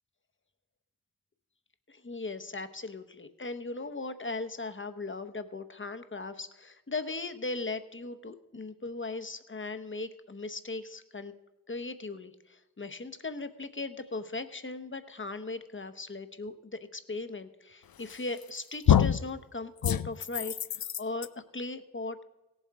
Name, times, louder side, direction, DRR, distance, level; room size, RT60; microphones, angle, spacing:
voice 1, 1.9-11.3 11.7-22.2, left 3 dB, 35° left, 10 dB, 0.8 m, -38 dB
sound 1, 18.1-18.5 18.9-19.3 19.8-21.3, left 9 dB, 80° left, 0.5 m, -25 dB
17.5 x 7.4 x 4.6 m, 1.0 s
wide cardioid pair, 65°, 35 cm